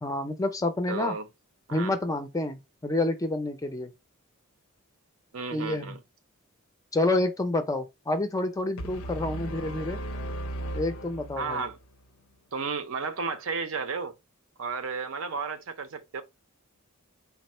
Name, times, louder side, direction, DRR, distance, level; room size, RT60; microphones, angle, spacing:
voice 1, 0.0-1.1 1.7-3.9 5.5-6.0 6.9-10.0 10.7-11.6, left 2 dB, 15° left, 0.4 m, -28 dB
voice 2, 0.9-1.3 1.7-1.9 5.3-6.0 11.4-11.8 12.5-14.1 14.6-16.2, right 5 dB, 65° right, 0.6 m, -33 dB
sound 1, 8.8-11.8, right 1 dB, 90° left, 0.5 m, -36 dB
3.5 x 2.0 x 4.1 m
head